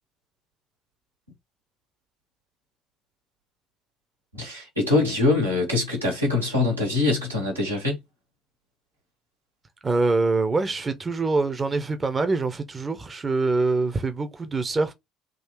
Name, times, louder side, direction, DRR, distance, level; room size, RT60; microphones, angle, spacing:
voice 1, 4.3-7.9, left 3 dB, 90° right, 1.6 m, -23 dB
voice 2, 9.8-14.9, right 3 dB, 25° right, 0.8 m, -24 dB
3.8 x 2.8 x 4.3 m
figure-of-eight pair, 55°, 0 cm